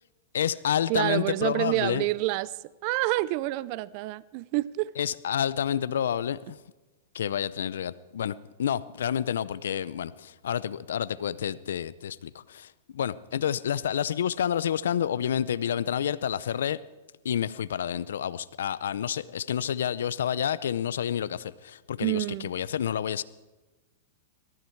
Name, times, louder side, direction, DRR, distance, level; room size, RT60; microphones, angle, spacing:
voice 1, 0.3-2.1 5.0-6.6 7.1-16.8 17.2-23.2, left 9 dB, 80° left, 0.5 m, -29 dB
voice 2, 0.9-2.5 2.8-4.9 22.0-22.5, right 18 dB, 45° right, 0.4 m, -28 dB
18.5 x 13.5 x 4.6 m
hypercardioid pair, 135°, 0 cm